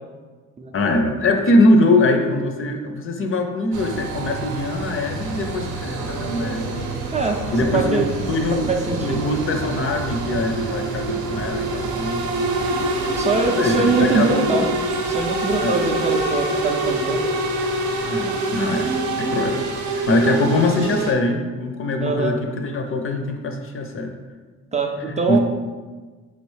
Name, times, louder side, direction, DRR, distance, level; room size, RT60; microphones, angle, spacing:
voice 1, 0.7-6.9 7.5-8.0 8.3-8.7 9.0-12.2 13.6-14.7 15.6-15.9 18.0-19.6 19.9-24.1 25.1-25.4, left 2 dB, 45° left, 4 dB, 0.5 m, -22 dB
sound 1, 3.7-21.1, right 2 dB, 70° right, 0.7 m, -26 dB
voice 2, 7.1-7.4 7.7-8.1 8.5-9.3 13.2-14.7 15.1-17.2 22.0-22.3 24.7-25.4, right 4 dB, 25° right, 2 dB, 0.4 m, -22 dB
4.0 x 3.1 x 3.2 m, 1.4 s
cardioid pair, 90°, 30 cm